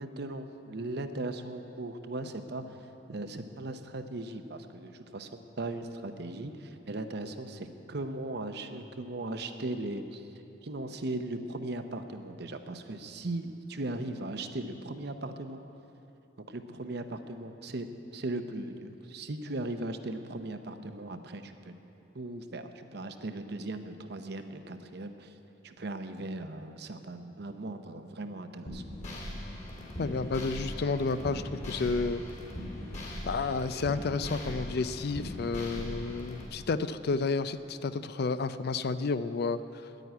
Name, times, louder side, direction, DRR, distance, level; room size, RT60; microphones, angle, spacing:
voice 1, 0.0-2.8 3.1-10.3 10.6-15.6 16.5-17.9 18.1-21.7 22.1-25.3 25.6-28.8, right 2 dB, 65° right, 8 dB, 0.8 m, -38 dB
sound 1, 28.7-36.5, left 1 dB, 40° left, 2.5 m, -40 dB
voice 2, 30.0-32.2 33.3-39.6, left 4 dB, 60° left, 13 dB, 0.4 m, -31 dB
10.0 x 9.2 x 9.3 m, 2.9 s
head